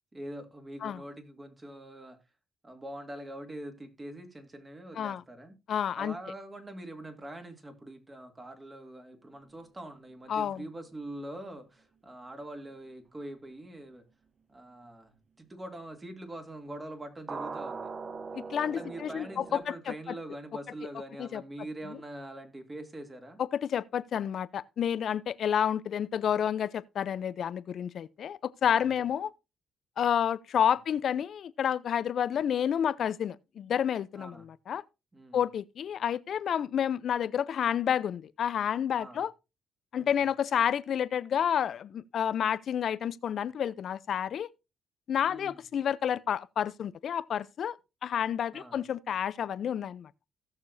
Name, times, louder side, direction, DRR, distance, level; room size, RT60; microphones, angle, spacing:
voice 1, 0.1-2.2 2.6-5.6 6.0-14.0 14.5-17.9 18.6-23.4 28.6-28.9 34.1-34.5 35.1-35.4 39.0-39.2 40.0-40.2 45.3-45.6 48.5-48.8, right 1 dB, 20° right, 2.6 m, -44 dB
voice 2, 5.7-6.1 10.3-10.6 18.3-19.9 21.2-21.4 23.5-29.3 30.0-34.8 35.3-39.3 39.9-44.5 45.1-47.8 48.0-50.1, left 9 dB, 60° left, 0.6 m, -30 dB
sound 1, 17.3-19.6, right 4 dB, 40° right, 0.7 m, -40 dB
16.5 x 6.8 x 2.7 m
cardioid pair, 90°, 0 cm